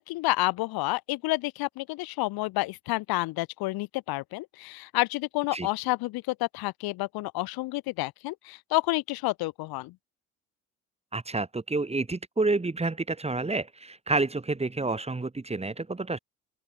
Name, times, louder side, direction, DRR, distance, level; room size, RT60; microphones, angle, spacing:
voice 1, 0.0-10.0, left 20 dB, 65° left, 1.8 m, -29 dB
voice 2, 11.1-16.2, right 3 dB, 15° right, 2.3 m, -29 dB
open air
hypercardioid pair, 65°, 39 cm